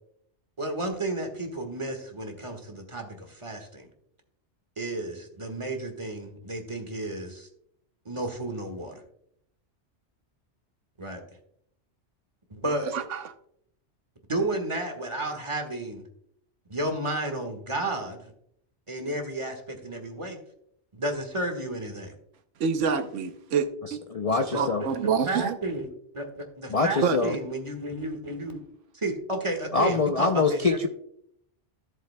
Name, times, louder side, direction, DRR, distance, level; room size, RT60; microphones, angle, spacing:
voice 1, 0.6-3.9 4.8-7.5 8.0-9.0 11.0-11.2 12.5-12.9 14.3-16.0 16.7-18.3 18.9-20.4 20.9-22.1 24.5-25.9 26.1-26.3 26.6-28.6 28.9-30.9, right 1 dB, 25° right, 1.6 m, -32 dB
voice 2, 12.7-13.3 22.6-24.0 24.5-25.6 27.0-27.2 28.5-28.6, right 6 dB, 90° right, 1.1 m, -27 dB
voice 3, 23.8-24.8 26.7-27.3 29.7-30.9, left 4 dB, 45° left, 0.5 m, -24 dB
14.0 x 7.3 x 2.2 m
omnidirectional pair, 1.2 m